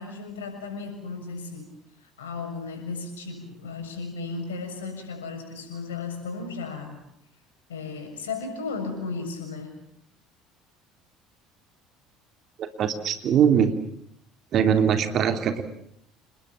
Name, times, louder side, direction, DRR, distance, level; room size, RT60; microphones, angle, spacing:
voice 1, 0.0-1.7 2.2-7.0 7.7-9.7, left 4 dB, 80° left, 6 dB, 6.9 m, -35 dB
voice 2, 12.6-13.8 14.5-15.6, right 8 dB, 50° right, 8 dB, 3.2 m, -22 dB
30.0 x 20.0 x 9.0 m, 0.74 s
figure-of-eight pair, 60°, 0 cm